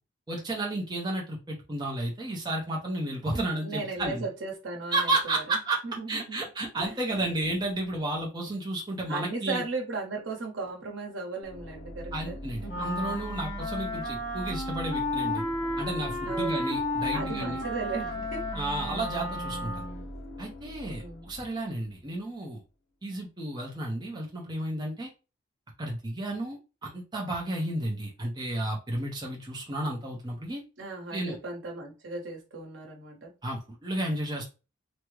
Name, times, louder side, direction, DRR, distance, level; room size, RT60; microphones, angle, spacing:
voice 1, 0.3-4.3 4.9-5.8 6.1-9.6 12.1-15.4 15.8-17.6 18.6-19.8 20.4-22.6 23.0-25.1 25.8-30.6 31.1-31.4 33.4-34.4, right 1 dB, 20° right, -1 dB, 0.5 m, -32 dB
voice 2, 3.3-6.4 6.8-7.3 9.1-12.9 16.2-16.5 17.1-18.5 18.8-19.0 20.8-21.3 30.8-33.3, right 3 dB, 70° right, 0 dB, 0.9 m, -37 dB
sound 1, 11.4-22.2, equal, 80° left, 0.5 m, -42 dB
Wind instrument woodwind instrument, 12.6-20.1, left 1 dB, 50° left, 1.3 m, -33 dB
3.4 x 2.0 x 3.0 m, 0.30 s
head